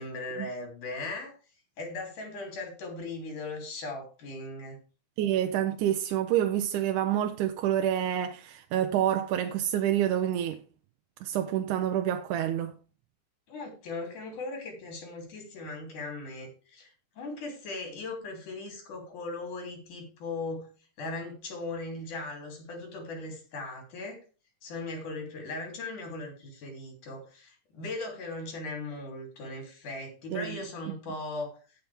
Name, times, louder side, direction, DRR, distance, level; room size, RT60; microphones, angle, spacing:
voice 1, 0.0-1.4 1.8-4.8 13.5-20.7 21.0-24.2 24.6-31.6, left 2 dB, 80° left, 4.7 m, -38 dB
voice 2, 5.2-10.6 11.2-12.8 30.3-30.6, right 11 dB, 80° right, 2.1 m, -28 dB
17.0 x 5.8 x 3.5 m
omnidirectional pair, 3.5 m